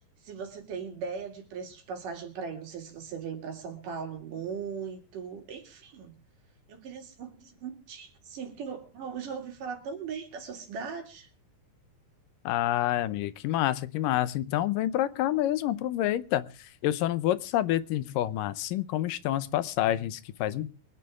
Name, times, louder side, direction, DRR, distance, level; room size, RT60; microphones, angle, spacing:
voice 1, 0.2-6.1 6.7-11.3, right 6 dB, 65° right, 4 dB, 3.9 m, -39 dB
voice 2, 12.5-20.7, left 13 dB, 75° left, 15 dB, 2.3 m, -28 dB
24.5 x 9.6 x 3.5 m, 0.34 s
omnidirectional pair, 4.2 m